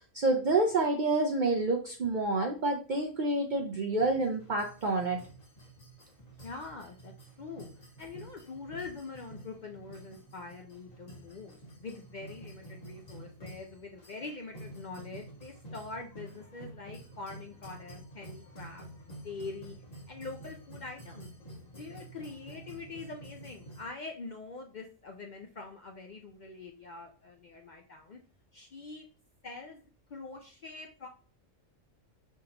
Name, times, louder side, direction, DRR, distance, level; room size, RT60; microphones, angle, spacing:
voice 1, 0.1-5.2, right 2 dB, 55° right, 2 dB, 0.5 m, -28 dB
sound 1, 4.0-23.9, right 1 dB, 30° left, 1.3 m, -50 dB
voice 2, 6.4-7.1 7.4-7.7 8.0-19.8 20.1-21.3 21.8-28.2 28.5-29.1 29.4-29.8 30.1-31.1, left 3 dB, 55° left, 3 dB, 0.5 m, -44 dB
5.4 x 3.5 x 2.8 m, 0.39 s
omnidirectional pair, 1.3 m